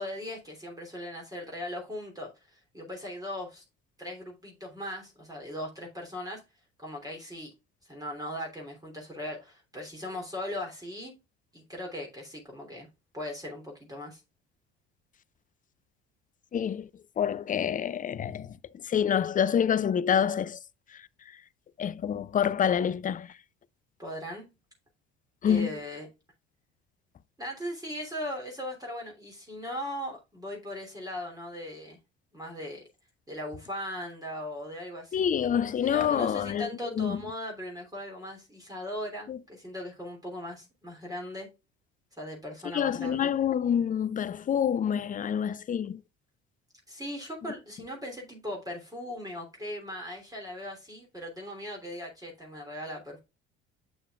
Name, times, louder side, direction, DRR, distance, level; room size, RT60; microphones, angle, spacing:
voice 1, 0.0-3.6 4.0-6.4 6.8-7.5 7.8-11.1 11.5-12.9 13.1-14.2 24.0-24.4 25.4-26.1 27.4-32.0 32.3-32.8 33.3-35.3 35.8-41.5 42.2-43.3 46.9-53.2, left 1 dB, 10° right, 3.1 m, -39 dB
voice 2, 16.5-16.9 17.2-20.6 20.9-21.0 21.8-23.3 25.4-25.7 35.1-37.2 39.3-39.4 42.7-46.0, left 8 dB, 25° left, 0.5 m, -27 dB
7.8 x 6.6 x 2.4 m
hypercardioid pair, 55°, 33 cm